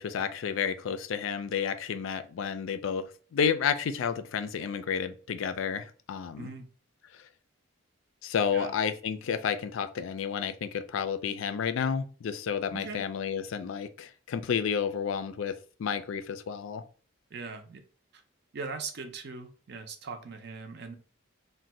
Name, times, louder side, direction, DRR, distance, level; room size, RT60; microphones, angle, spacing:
voice 1, 0.0-6.5 7.1-7.2 8.2-16.8, left 7 dB, 70° left, 0.3 m, -31 dB
voice 2, 12.7-13.0 17.3-17.8 18.5-20.9, right 4 dB, 55° right, 0.5 m, -40 dB
2.5 x 2.2 x 4.0 m
head